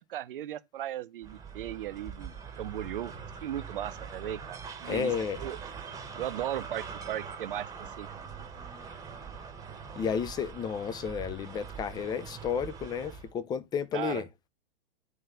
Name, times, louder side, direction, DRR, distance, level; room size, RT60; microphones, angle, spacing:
voice 1, 0.0-5.6 6.1-8.2 13.9-14.2, right 12 dB, 60° right, 0.8 m, -37 dB
sound 1, 1.2-13.3, right 6 dB, 10° right, 1.2 m, -43 dB
voice 2, 4.9-5.4 10.0-14.3, left 7 dB, 15° left, 0.5 m, -32 dB
9.3 x 3.3 x 5.6 m
figure-of-eight pair, 110°, 30 cm